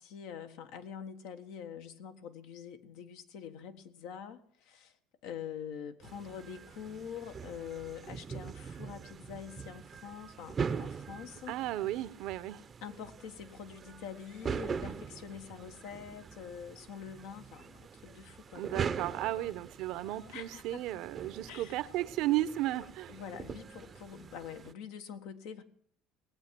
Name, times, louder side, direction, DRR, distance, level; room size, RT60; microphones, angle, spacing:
voice 1, 0.0-5.0 5.2-11.6 12.8-19.5 20.3-21.0 21.4-21.8 23.1-25.6, left 8 dB, 75° left, 1.5 m, -45 dB
sound 1, 6.0-24.7, right 6 dB, 30° right, 0.7 m, -42 dB
voice 2, 11.5-12.6 18.5-23.2, right 15 dB, 65° right, 0.8 m, -34 dB
19.0 x 8.3 x 7.5 m
supercardioid pair, 110°, 0 cm